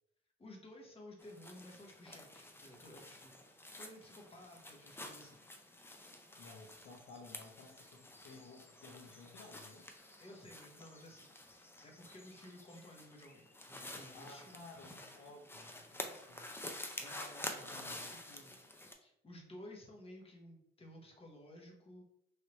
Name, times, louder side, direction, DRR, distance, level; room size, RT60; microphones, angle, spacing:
voice 1, 0.4-5.4 10.2-14.6 17.0-18.6 19.0-22.0, left 1 dB, 30° left, 1 dB, 1.0 m, -55 dB
sound 1, 1.2-18.9, left 1 dB, 10° left, 0.5 m, -50 dB
voice 2, 6.4-9.9 14.1-16.5 17.6-18.4, left 3 dB, 70° left, 1 dB, 0.6 m, -56 dB
3.2 x 2.7 x 3.0 m, 0.76 s
cardioid pair, 90°, 20 cm